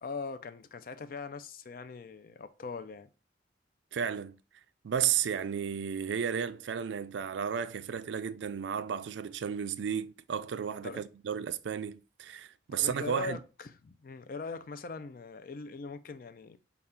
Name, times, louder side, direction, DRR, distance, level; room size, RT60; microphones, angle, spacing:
voice 1, 0.0-3.1 10.8-11.0 12.7-16.6, left 4 dB, 50° left, 0.4 m, -41 dB
voice 2, 3.9-4.4 4.8-13.4, right 8 dB, 75° right, 0.4 m, -33 dB
5.5 x 2.3 x 3.6 m
head